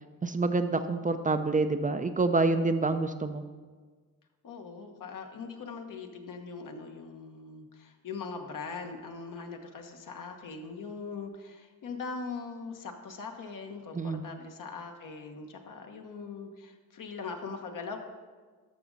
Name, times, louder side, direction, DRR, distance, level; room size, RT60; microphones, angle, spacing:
voice 1, 0.2-3.4 13.9-14.2, right 3 dB, 25° right, 8 dB, 0.5 m, -27 dB
voice 2, 4.4-18.0, left 4 dB, 65° left, 4 dB, 1.2 m, -41 dB
12.5 x 6.1 x 4.0 m, 1.5 s
cardioid pair, 90°, 34 cm